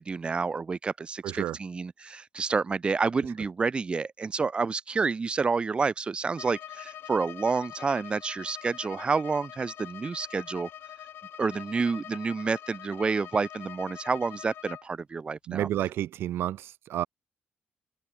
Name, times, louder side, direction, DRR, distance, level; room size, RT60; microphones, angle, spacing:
voice 1, 0.0-10.7 11.4-15.7, right 4 dB, 25° right, 3.5 m, -29 dB
voice 2, 1.2-1.6 15.5-17.1, right 12 dB, 90° right, 6.8 m, -30 dB
Bowed string instrument, 6.3-14.9, left 11 dB, 75° left, 7.3 m, -44 dB
cardioid pair, 145°, 4 cm